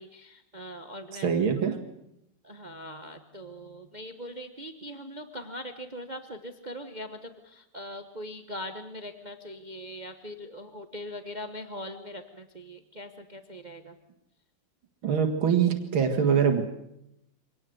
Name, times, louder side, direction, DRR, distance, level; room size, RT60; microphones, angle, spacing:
voice 1, 0.0-1.3 2.4-13.9, equal, 30° right, 7 dB, 1.0 m, -41 dB
voice 2, 1.1-1.8 15.0-16.7, right 7 dB, 70° right, 4 dB, 2.6 m, -24 dB
24.5 x 18.0 x 7.9 m, 0.82 s
omnidirectional pair, 2.4 m